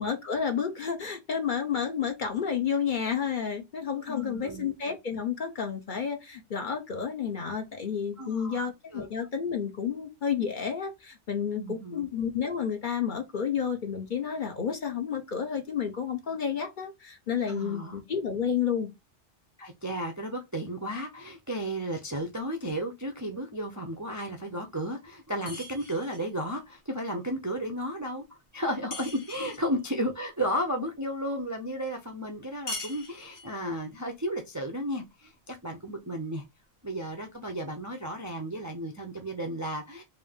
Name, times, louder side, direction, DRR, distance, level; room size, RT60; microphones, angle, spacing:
voice 1, 0.0-18.9 29.4-29.5, left 7 dB, 50° left, 0.7 m, -31 dB
voice 2, 4.1-4.7 8.2-9.1 11.5-12.1 17.5-18.0 19.6-36.4 36.8-40.0, equal, 25° right, 0.4 m, -33 dB
sound 1, 25.5-26.3 28.9-29.7 32.7-33.6, left 2 dB, 70° left, 1.5 m, -40 dB
3.6 x 2.6 x 3.5 m
omnidirectional pair, 1.2 m